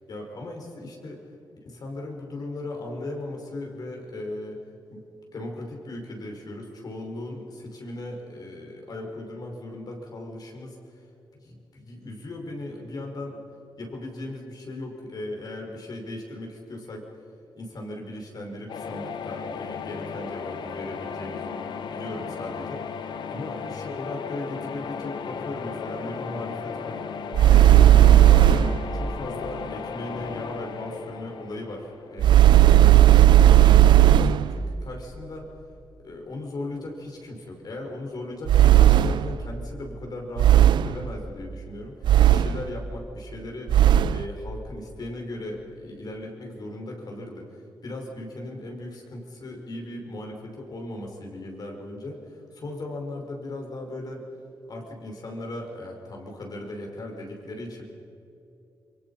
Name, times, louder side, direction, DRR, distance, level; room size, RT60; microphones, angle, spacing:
voice 1, 0.1-1.2 1.7-4.6 4.9-5.0 5.3-10.8 11.4-13.4 13.8-17.1 17.6-21.5 21.9-27.0 27.5-33.0 33.4-35.5 36.0-43.7 44.1-54.3 54.7-57.8, left 1 dB, 55° left, 1 dB, 5.4 m, -37 dB
sound 1, 18.7-32.5, left 6 dB, 75° left, 1.1 m, -35 dB
sound 2, 27.3-28.8 32.2-34.5 38.5-39.3 40.4-41.0 42.0-42.7 43.7-44.2, right 12 dB, 90° right, 0.5 m, -15 dB
28.5 x 23.5 x 5.7 m, 2.8 s
cardioid pair, 95°, 8 cm